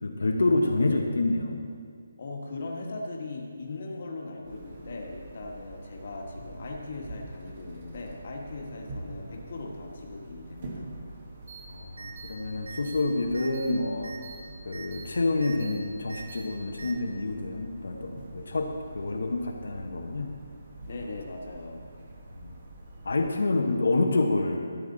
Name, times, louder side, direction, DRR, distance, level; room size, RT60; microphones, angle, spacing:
voice 1, 0.0-1.6 11.7-14.1 14.6-20.3 22.3-22.5 23.0-24.7, left 2 dB, 70° left, 2 dB, 1.0 m, -28 dB
voice 2, 2.2-10.9 20.9-21.8, left 2 dB, 35° left, 0 dB, 1.4 m, -39 dB
sound 1, 4.4-23.2, right 1 dB, 25° right, 1.2 m, -45 dB
sound 2, 11.5-11.6 12.0-12.3 12.7-13.0 13.3-13.7 14.0-14.4 14.7-15.0 15.4-15.7 16.1-16.4 16.8-16.9, right 5 dB, 65° right, 3.0 m, -43 dB
13.5 x 9.3 x 3.9 m, 2.1 s
hypercardioid pair, 180°, 0 cm